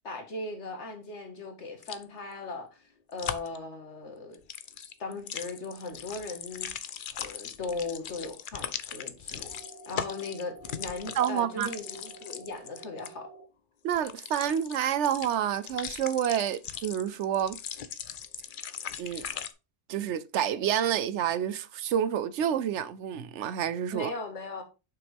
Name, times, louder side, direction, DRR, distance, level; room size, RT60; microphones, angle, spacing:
voice 1, 0.0-2.8 3.1-4.4 4.8-6.7 7.2-9.5 9.9-13.3 23.9-24.6, left 3 dB, 80° left, 1.9 m, -38 dB
sound 1, 1.8-2.0 3.2-3.6 4.3-13.1 13.9-19.5, left 8 dB, 55° left, 0.7 m, -39 dB
sound 2, 9.4-13.4, right 2 dB, 55° right, 2.7 m, -50 dB
voice 2, 11.1-11.7 13.8-17.6 19.0-19.2 19.9-24.1, right 9 dB, 80° right, 0.9 m, -28 dB
7.1 x 5.9 x 3.4 m
omnidirectional pair, 1.2 m